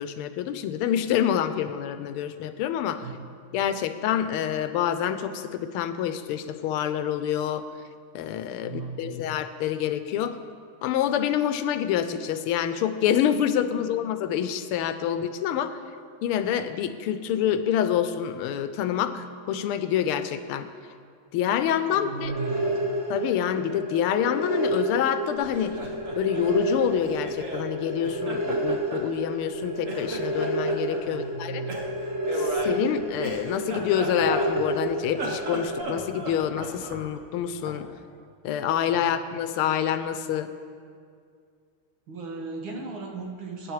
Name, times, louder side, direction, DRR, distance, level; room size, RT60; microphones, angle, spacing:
voice 1, 0.0-3.1 3.5-7.7 8.1-10.4 10.8-15.8 16.2-20.7 21.3-22.3 23.1-25.8 26.1-31.6 32.3-37.9 38.4-40.5, left 9 dB, 90° left, 10 dB, 1.5 m, -27 dB
voice 2, 8.6-9.2 13.8-13.9 21.9-22.9 31.0-31.8 38.9-39.2 42.1-43.7, right 3 dB, 65° right, 0 dB, 2.1 m, -36 dB
sound 1, 22.2-35.8, right 1 dB, 55° left, 3.4 m, -30 dB
Laughter, 25.4-27.7 28.0-29.6 29.8-31.0 31.7-34.8 35.1-37.0, right 2 dB, 45° right, 1.3 m, -36 dB
sound 2, 32.6-32.7 33.3-33.4 33.7-34.7 35.0-35.2 36.0-37.1 37.7-37.8, equal, 20° right, 1.1 m, -42 dB
18.5 x 9.9 x 3.1 m, 2.3 s
omnidirectional pair, 2.4 m